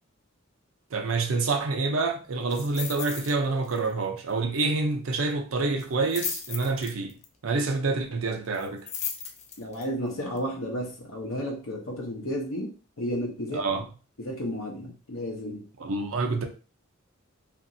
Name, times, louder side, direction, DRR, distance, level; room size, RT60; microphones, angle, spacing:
voice 1, 0.9-7.2 7.4-8.9 13.5-13.8 15.8-16.4, right 3 dB, 80° right, 0.6 m, -27 dB
sound 1, 2.5-3.4 3.6-3.9 4.2-4.3 5.8-7.3 8.5-9.8 10.4-10.5, left 7 dB, 35° left, 0.4 m, -36 dB
voice 2, 9.6-13.8 14.2-15.7, equal, 85° left, 0.7 m, -33 dB
2.8 x 2.5 x 2.6 m
head